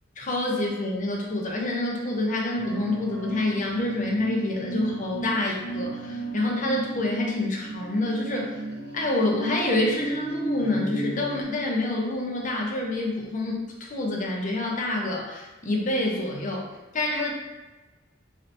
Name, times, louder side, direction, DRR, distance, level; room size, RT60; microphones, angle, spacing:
voice 1, 0.2-8.6 8.9-16.7 16.9-17.3, left 2 dB, 40° left, -1 dB, 0.6 m, -27 dB
sound 1, 2.6-11.4, right 2 dB, 55° right, 0.5 m, -34 dB
3.2 x 2.9 x 2.6 m, 1.2 s
head